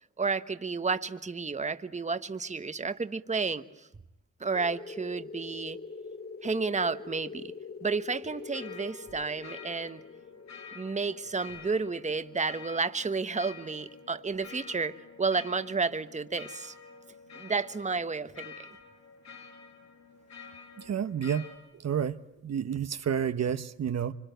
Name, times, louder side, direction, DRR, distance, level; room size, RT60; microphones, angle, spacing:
voice 1, 0.2-3.6 4.4-5.8 6.4-7.5 7.8-10.0 10.7-16.7 17.4-18.5, right 4 dB, 25° right, 1.2 m, -31 dB
sound 1, 4.5-12.9, left 5 dB, 30° left, 1.1 m, -44 dB
sound 2, 8.3-21.6, left 5 dB, 65° left, 5.6 m, -49 dB
voice 2, 20.8-21.5 21.7-24.1, right 8 dB, 55° right, 1.1 m, -30 dB
26.0 x 25.0 x 9.2 m
cardioid pair, 75°, 31 cm